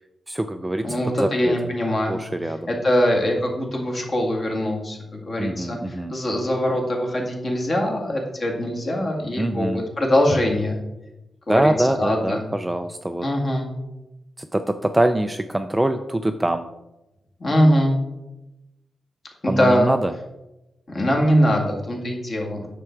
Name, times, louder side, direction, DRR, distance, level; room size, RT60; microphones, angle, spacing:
voice 1, 0.3-1.8 2.1-2.7 5.4-6.1 9.4-9.8 11.5-13.3 14.4-16.7 19.5-20.1, right 1 dB, 10° right, 8 dB, 0.3 m, -24 dB
voice 2, 0.8-2.2 2.7-10.8 11.5-12.4 13.2-13.7 17.4-18.0 19.4-19.9 20.9-22.6, equal, 35° left, 1 dB, 1.9 m, -22 dB
9.6 x 6.7 x 4.5 m, 0.96 s
wide cardioid pair, 175°, 0 cm